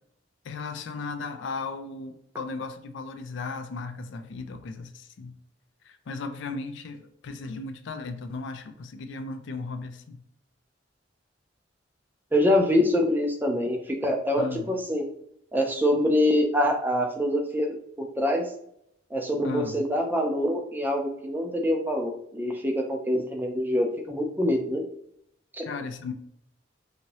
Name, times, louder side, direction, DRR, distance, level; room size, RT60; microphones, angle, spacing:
voice 1, 0.4-5.3 5.8-10.2 14.4-14.7 19.4-19.8 25.6-26.1, left 3 dB, 65° left, 8 dB, 0.4 m, -36 dB
voice 2, 12.3-15.1 15.5-18.5 19.1-24.8 25.6-25.7, left 1 dB, 10° right, 2 dB, 0.4 m, -25 dB
2.8 x 2.7 x 2.9 m, 0.73 s
head